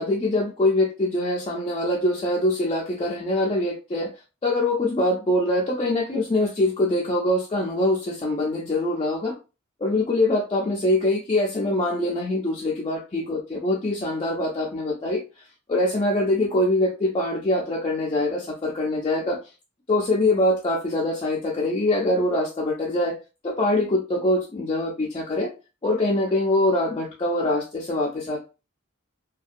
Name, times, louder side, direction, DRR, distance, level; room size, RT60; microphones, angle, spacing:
voice 1, 0.0-4.1 4.4-9.3 9.8-15.2 15.7-19.4 19.9-23.2 23.4-25.5 25.8-28.4, left 1 dB, 25° left, -3 dB, 0.4 m, -23 dB
2.5 x 2.2 x 2.4 m, 0.31 s
head